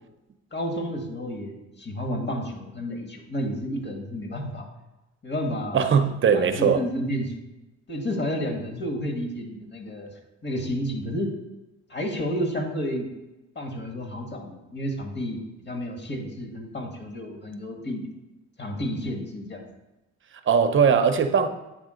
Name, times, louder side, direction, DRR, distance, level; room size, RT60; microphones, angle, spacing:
voice 1, 0.5-4.7 5.2-5.9 6.3-7.3 7.9-10.1 10.4-11.3 11.9-13.1 13.6-15.4 15.7-18.0 18.6-19.6, equal, 35° left, 1.8 m, -31 dB
voice 2, 5.7-6.8 20.5-21.5, right 6 dB, 40° right, 0.7 m, -20 dB
8.5 x 3.6 x 5.0 m
cardioid pair, 90°, 30 cm